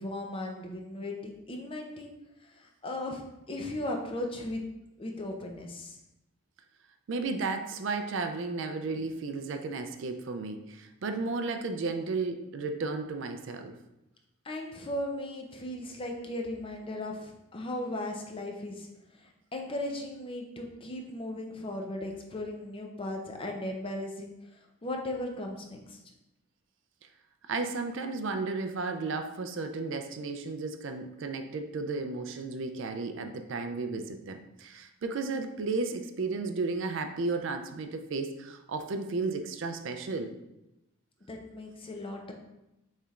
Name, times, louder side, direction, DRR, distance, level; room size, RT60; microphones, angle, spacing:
voice 1, 0.0-2.2 2.4-3.2 3.5-4.6 5.0-6.0 14.4-18.9 19.2-24.3 24.8-26.0 41.3-42.3, left 1 dB, 25° left, 2 dB, 0.5 m, -37 dB
voice 2, 7.1-13.7 27.5-40.4, right 3 dB, 60° right, 6 dB, 0.4 m, -33 dB
6.7 x 3.2 x 2.4 m, 0.92 s
head